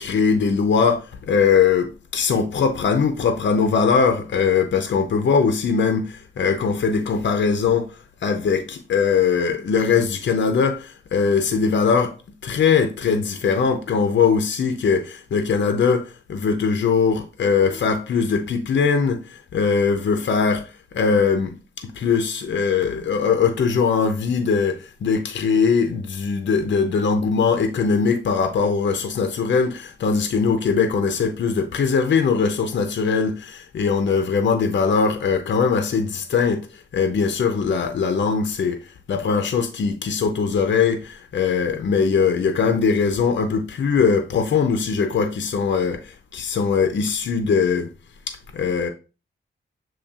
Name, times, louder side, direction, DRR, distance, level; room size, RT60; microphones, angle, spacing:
voice 1, 0.0-7.9 8.2-12.1 12.4-47.9 48.3-48.9, left 5 dB, 65° left, 0.5 m, -21 dB
7.0 x 3.0 x 2.3 m
wide cardioid pair, 100°, 20 cm